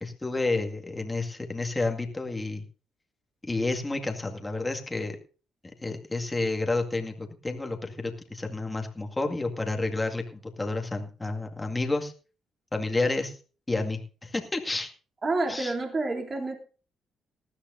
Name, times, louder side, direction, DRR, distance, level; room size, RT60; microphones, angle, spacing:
voice 1, 0.0-2.6 3.4-5.2 5.8-12.1 12.7-13.4 13.7-14.9 15.5-15.7, left 2 dB, 15° left, 2.0 m, -30 dB
voice 2, 15.2-16.6, right 2 dB, 35° right, 2.9 m, -28 dB
19.0 x 13.0 x 2.7 m
cardioid pair, 90°, 0 cm